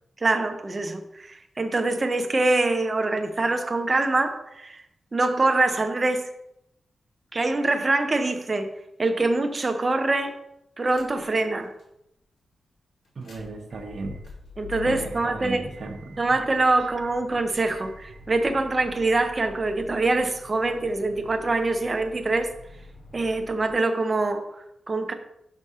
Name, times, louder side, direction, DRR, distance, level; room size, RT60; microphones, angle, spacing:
voice 1, 0.2-4.8 5.1-6.3 7.3-8.7 9.0-10.4 10.8-11.7 14.6-15.7 16.2-22.5 23.1-25.1, right 2 dB, 35° right, 1.0 m, -24 dB
sound 1, 10.8-11.4 11.8-11.9 13.0-23.7, left 3 dB, 70° left, 2.6 m, -46 dB
voice 2, 13.2-14.2 14.9-15.0 15.2-16.2, right 3 dB, 65° right, 1.2 m, -35 dB
6.1 x 5.2 x 5.6 m
cardioid pair, 80°, 0 cm